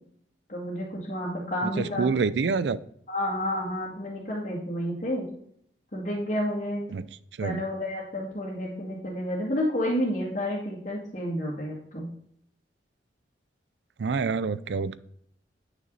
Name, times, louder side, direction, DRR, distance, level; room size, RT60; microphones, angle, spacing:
voice 1, 0.5-2.1 3.1-5.2 5.9-6.9 7.4-12.1, equal, 45° left, 2.1 m, -30 dB
voice 2, 1.6-2.8 6.9-7.0 7.4-7.6 14.0-15.0, right 5 dB, 75° right, 0.4 m, -27 dB
9.2 x 6.1 x 4.0 m
head